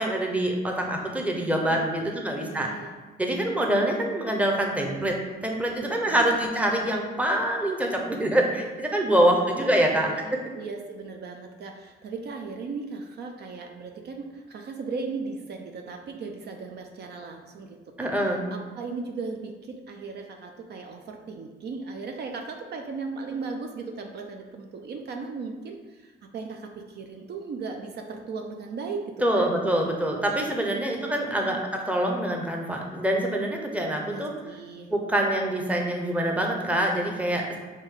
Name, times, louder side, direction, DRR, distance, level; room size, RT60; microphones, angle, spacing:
voice 1, 0.0-2.7 3.2-5.1 5.4-10.1 18.0-18.5 29.2-34.3 34.9-37.6, right 1 dB, 5° right, 0 dB, 0.7 m, -25 dB
voice 2, 1.7-2.9 5.8-6.9 9.3-9.7 9.9-29.5 30.7-31.6 34.0-34.9, right 4 dB, 55° right, 3 dB, 0.5 m, -37 dB
5.1 x 2.7 x 3.6 m, 1.3 s
cardioid pair, 90°, 20 cm